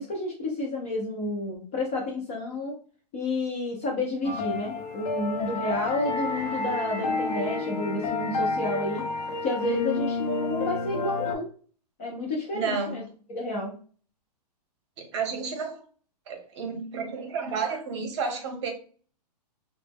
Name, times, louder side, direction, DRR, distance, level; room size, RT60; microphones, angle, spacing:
voice 1, 0.0-2.7 3.1-9.0 9.4-11.5 12.0-13.0 13.3-13.8, left 1 dB, 20° left, -1 dB, 0.3 m, -30 dB
sound 1, 4.2-11.4, left 3 dB, 65° left, 0.6 m, -30 dB
voice 2, 12.5-13.0 15.0-15.8 16.3-18.7, right 5 dB, 45° right, 3 dB, 0.7 m, -31 dB
2.0 x 2.0 x 3.3 m, 0.41 s
hypercardioid pair, 155°, 21 cm